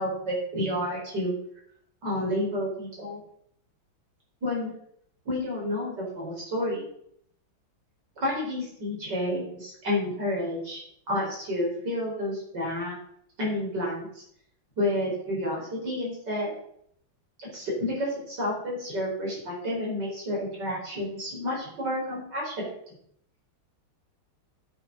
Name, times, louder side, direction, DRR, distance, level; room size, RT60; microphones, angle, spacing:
voice 1, 0.0-1.3 2.0-3.2 4.4-4.7 5.3-6.8 8.2-10.8 11.1-13.0 13.4-14.2 14.8-16.5 17.4-22.7, left 1 dB, 60° right, -3 dB, 5.2 m, -30 dB
9.3 x 8.2 x 5.5 m, 0.68 s
omnidirectional pair, 2.2 m